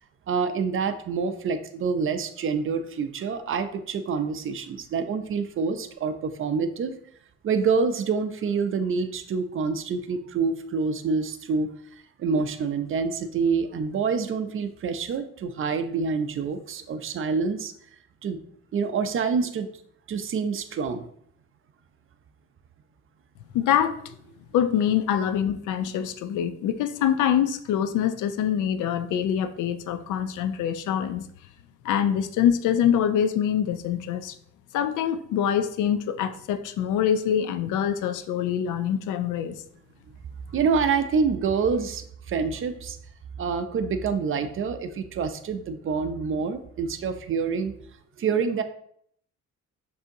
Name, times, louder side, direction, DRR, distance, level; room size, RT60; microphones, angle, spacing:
voice 1, 0.3-6.9 7.4-11.7 12.2-17.7 18.2-18.4 18.7-19.7 20.1-21.1 40.5-43.0 43.4-47.7 48.2-48.6, right 5 dB, 45° right, 9 dB, 0.5 m, -27 dB
voice 2, 23.5-24.0 24.5-31.3 31.8-34.4 34.7-39.6, left 9 dB, 80° left, 11 dB, 0.5 m, -25 dB
6.2 x 2.8 x 2.7 m, 0.67 s
cardioid pair, 90°, 30 cm